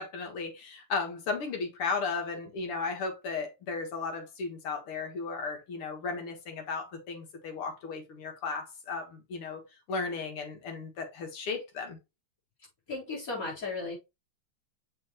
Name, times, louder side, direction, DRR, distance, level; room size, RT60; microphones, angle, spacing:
voice 1, 0.0-9.6 9.9-12.0, left 4 dB, 90° left, 2.5 m, -35 dB
voice 2, 12.9-14.0, left 3 dB, 40° left, 4.3 m, -35 dB
7.0 x 5.1 x 3.0 m
omnidirectional pair, 2.3 m